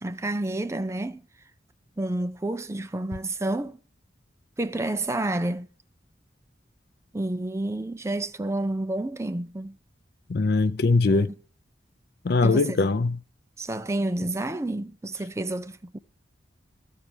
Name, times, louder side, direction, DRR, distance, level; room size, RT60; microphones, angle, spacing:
voice 1, 0.0-1.2 2.0-3.8 4.6-5.7 7.1-9.8 11.1-11.2 12.4-12.8 13.6-16.0, right 1 dB, 15° right, 0.4 m, -29 dB
voice 2, 10.3-11.3 12.2-13.2, left 3 dB, 55° left, 0.5 m, -21 dB
13.5 x 4.6 x 8.6 m
head